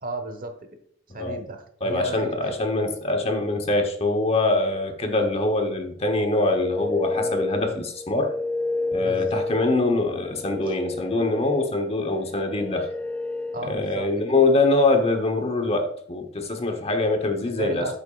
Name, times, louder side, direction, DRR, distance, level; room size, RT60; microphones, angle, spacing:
voice 1, 0.0-0.5 1.1-2.5 9.0-9.4 10.6-10.7 13.5-14.1 17.5-18.0, right 2 dB, 45° right, 7 dB, 1.2 m, -33 dB
voice 2, 1.8-8.4 8.9-12.9 13.7-17.9, left 2 dB, 30° left, 5 dB, 1.1 m, -24 dB
sound 1, 6.1-13.9, left 2 dB, 5° left, 0.3 m, -31 dB
8.5 x 8.1 x 2.4 m, 0.65 s
head